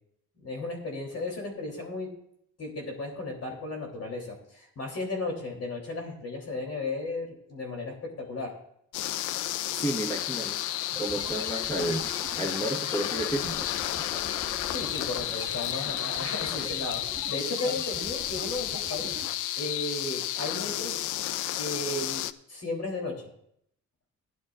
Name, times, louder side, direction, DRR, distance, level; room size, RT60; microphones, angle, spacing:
voice 1, 0.4-2.1 2.6-8.6 14.7-21.0 21.6-22.2 22.5-23.3, left 2 dB, 55° left, 0 dB, 3.3 m, -35 dB
sound 1, 8.9-22.3, left 14 dB, 80° left, 0.5 m, -32 dB
voice 2, 9.8-10.6 11.0-12.0 12.4-13.7 17.6-17.8, right 1 dB, 10° left, 0 dB, 1.3 m, -31 dB
sound 2, 10.9-19.3, right 3 dB, 15° right, 1.1 m, -44 dB
16.5 x 10.5 x 2.5 m, 0.71 s
cardioid pair, 90°, 30 cm